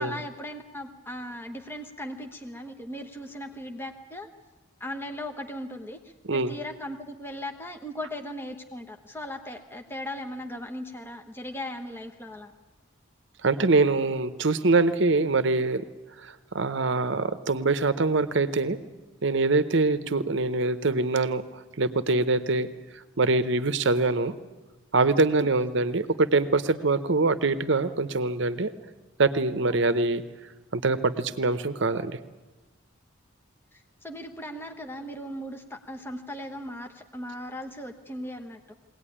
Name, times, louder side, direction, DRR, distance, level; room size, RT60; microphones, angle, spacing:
voice 1, 0.0-4.3 4.8-12.5 25.6-25.7 29.9-30.0 33.7-38.7, left 1 dB, 10° left, 4 dB, 1.1 m, -38 dB
voice 2, 13.4-15.8 16.2-18.8 19.2-22.7 22.9-24.3 24.9-28.7 29.2-30.2 30.7-32.1, right 3 dB, 55° right, 12 dB, 0.8 m, -24 dB
22.0 x 18.0 x 10.0 m, 1.2 s
head